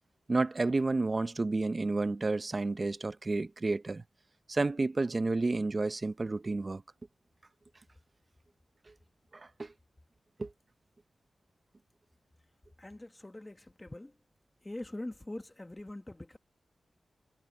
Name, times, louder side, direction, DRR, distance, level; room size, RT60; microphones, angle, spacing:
voice 1, 0.3-4.0 4.5-6.8 9.3-9.7 10.4-10.5, right 3 dB, 30° right, 0.7 m, -31 dB
voice 2, 12.8-14.2 14.6-16.4, left 1 dB, 15° left, 1.5 m, -43 dB
wide cardioid pair, 140°, 0 cm